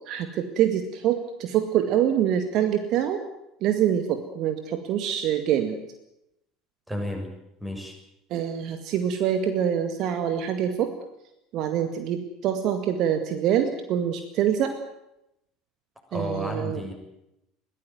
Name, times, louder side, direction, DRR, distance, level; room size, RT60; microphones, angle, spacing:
voice 1, 0.1-3.2 3.6-5.8 8.3-10.9 11.5-14.8 16.1-16.8, right 9 dB, 50° right, 8 dB, 2.0 m, -25 dB
voice 2, 6.9-7.3 7.6-8.0 16.1-16.9, left 1 dB, 5° right, 4 dB, 6.9 m, -32 dB
22.0 x 16.5 x 9.5 m, 0.85 s
figure-of-eight pair, 65°, 0 cm